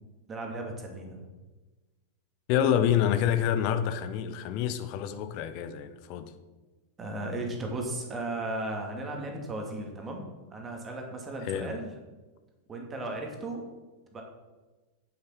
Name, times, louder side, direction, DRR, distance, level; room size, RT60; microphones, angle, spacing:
voice 1, 0.3-1.3 7.0-11.9 12.7-13.6 14.1-14.2, right 2 dB, 20° right, 2.4 m, -36 dB
voice 2, 2.5-6.3 11.4-11.7, left 9 dB, 45° left, 0.8 m, -27 dB
8.9 x 8.0 x 5.6 m
figure-of-eight pair, 90°, 0 cm